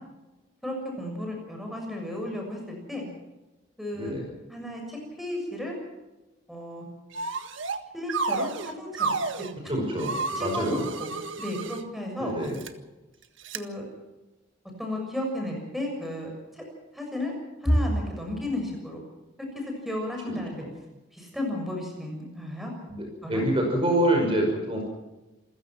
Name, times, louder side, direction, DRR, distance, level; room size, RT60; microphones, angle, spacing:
voice 1, 0.6-3.1 3.8-4.1 4.5-5.8 6.5-6.9 7.9-9.2 10.3-11.1 11.4-12.3 13.5-13.8 14.8-16.6 16.9-17.3 17.6-19.0 19.4-20.6 21.1-22.7 23.2-23.4, left 1 dB, ahead, 1 dB, 6.7 m, -32 dB
voice 2, 3.9-4.3 9.7-10.9 12.2-12.6 20.3-20.4 22.9-24.8, right 1 dB, 25° right, 2 dB, 5.7 m, -26 dB
sound 1, 7.1-7.8 8.1-9.5 10.0-11.8 12.4-12.7 13.4-13.6, right 4 dB, 75° right, 1.6 m, -31 dB
28.0 x 16.0 x 6.1 m, 1.1 s
head